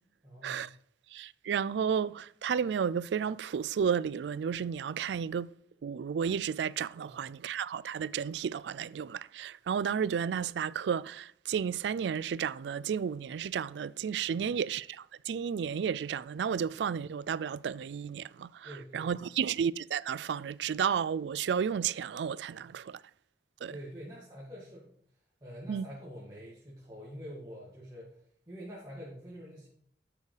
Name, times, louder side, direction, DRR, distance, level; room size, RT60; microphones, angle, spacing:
voice 1, 0.2-0.7 7.0-7.2 14.3-14.5 18.6-19.1 22.6-22.7 23.7-24.9 25.4-28.2 28.5-29.7, equal, 20° right, 2.1 m, -46 dB
voice 2, 1.1-5.5 5.8-23.0 23.6-23.7 25.7-25.9, right 7 dB, 80° right, 0.3 m, -32 dB
12.0 x 6.8 x 3.3 m
head